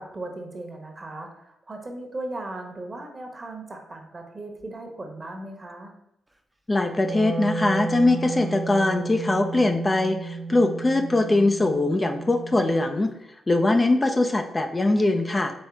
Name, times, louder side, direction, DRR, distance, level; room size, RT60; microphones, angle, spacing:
voice 1, 0.0-5.9, right 2 dB, 35° right, 3 dB, 1.0 m, -37 dB
voice 2, 6.7-13.1 13.5-15.5, left 2 dB, 30° left, 6 dB, 0.5 m, -22 dB
Wind instrument woodwind instrument, 6.9-13.1, right 3 dB, 15° right, 0.6 m, -33 dB
4.4 x 3.2 x 3.5 m, 0.83 s
hypercardioid pair, 45°, 0 cm